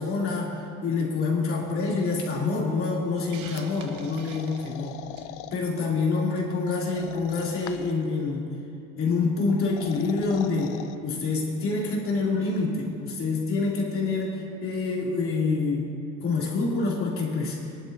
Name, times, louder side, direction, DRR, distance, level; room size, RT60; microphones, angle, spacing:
voice 1, 0.0-5.0 5.5-8.4 9.0-15.9 16.2-17.6, left 4 dB, 45° left, -4 dB, 3.0 m, -27 dB
Hiss, 3.3-5.4, right 7 dB, 70° right, 1.0 m, -45 dB
sound 1, 3.6-5.6 6.9-8.0 9.5-11.0, left 13 dB, 85° left, 0.6 m, -42 dB
23.0 x 11.0 x 2.8 m, 2.8 s
cardioid pair, 130°, 31 cm